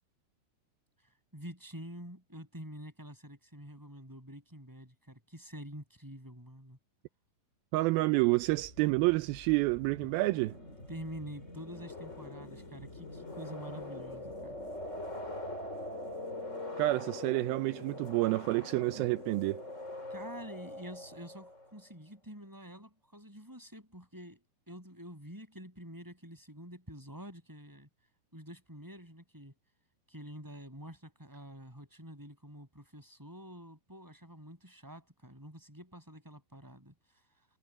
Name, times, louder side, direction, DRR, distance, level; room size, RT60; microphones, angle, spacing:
voice 1, 1.0-6.8 10.9-14.6 20.1-27.9 28.3-29.6 30.1-37.4, equal, 5° right, 6.6 m, -48 dB
voice 2, 7.7-10.6 16.8-19.6, right 21 dB, 85° right, 2.1 m, -29 dB
sound 1, 8.4-21.8, left 1 dB, 15° left, 5.0 m, -43 dB
omnidirectional pair, 4.9 m